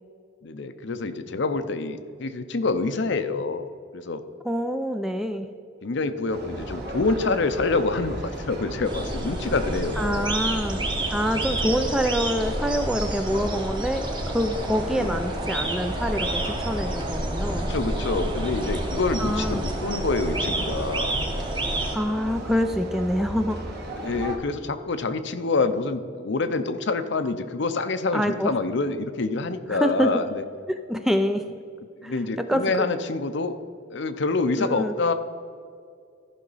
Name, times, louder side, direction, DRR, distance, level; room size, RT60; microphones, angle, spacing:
voice 1, 0.4-3.7 3.9-4.2 5.8-10.3 14.9-15.3 17.7-21.2 24.0-30.4 32.0-33.6 33.9-35.1, left 3 dB, 60° left, 10 dB, 0.6 m, -26 dB
voice 2, 4.4-5.5 10.0-10.8 11.1-17.7 19.2-19.6 21.9-23.6 28.1-28.5 29.7-30.2 30.7-31.4 32.0-32.1 32.5-32.9 34.6-34.9, equal, ahead, 7 dB, 0.4 m, -26 dB
sound 1, 6.3-24.4, right 1 dB, 55° right, 1.7 m, -36 dB
sound 2, 8.8-22.0, right 1 dB, 25° right, 1.1 m, -29 dB
14.5 x 5.7 x 4.1 m, 2.3 s
head